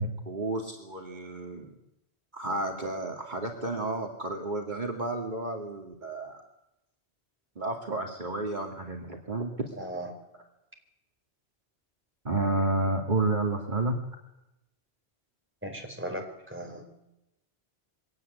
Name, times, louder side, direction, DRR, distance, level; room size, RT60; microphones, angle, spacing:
voice 1, 0.0-1.7 2.3-6.4 7.6-9.7 12.2-14.0, right 2 dB, 45° right, 1 dB, 2.6 m, -31 dB
voice 2, 9.8-10.1 15.6-16.8, right 1 dB, 10° right, 2 dB, 4.5 m, -37 dB
23.5 x 17.5 x 9.6 m, 0.89 s
omnidirectional pair, 1.1 m